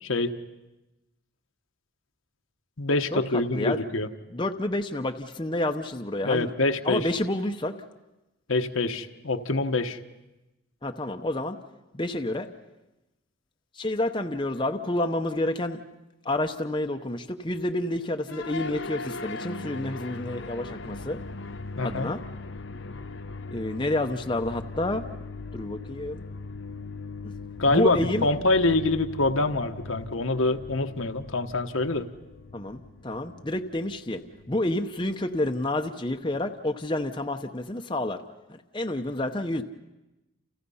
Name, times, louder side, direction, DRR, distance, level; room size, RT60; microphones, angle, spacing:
voice 1, 0.0-0.3 2.8-4.1 6.2-7.1 8.5-10.0 21.8-22.1 27.6-32.1, left 2 dB, 80° left, 6 dB, 1.3 m, -25 dB
voice 2, 4.3-6.5 6.8-7.8 10.8-11.6 11.9-12.5 13.7-15.8 16.2-21.2 21.8-22.2 23.5-25.0 25.5-26.2 27.7-28.3 32.5-38.2 38.5-39.6, left 1 dB, 20° left, 5 dB, 0.8 m, -29 dB
sound 1, 18.3-36.6, left 3 dB, 60° left, 0.8 m, -40 dB
29.5 x 29.0 x 5.6 m, 1.0 s
head